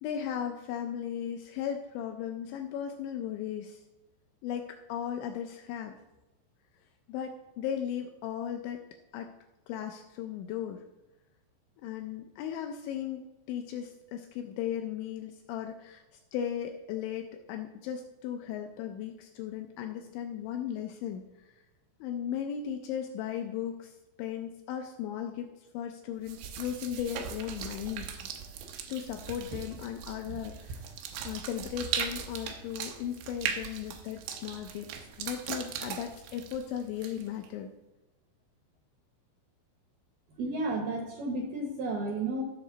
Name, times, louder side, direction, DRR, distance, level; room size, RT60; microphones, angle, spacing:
voice 1, 0.0-3.8 4.4-6.0 7.1-8.8 9.1-9.3 9.7-10.8 11.8-16.0 16.3-21.3 22.0-28.1 28.9-30.8 31.2-34.9 35.2-37.7, left 9 dB, 85° left, 4 dB, 2.6 m, -36 dB
sound 1, 26.3-37.5, right 7 dB, 90° right, 2.4 m, -39 dB
voice 2, 40.4-42.4, right 2 dB, 75° right, 1 dB, 2.4 m, -32 dB
15.0 x 6.0 x 3.9 m, 1.0 s
omnidirectional pair, 5.8 m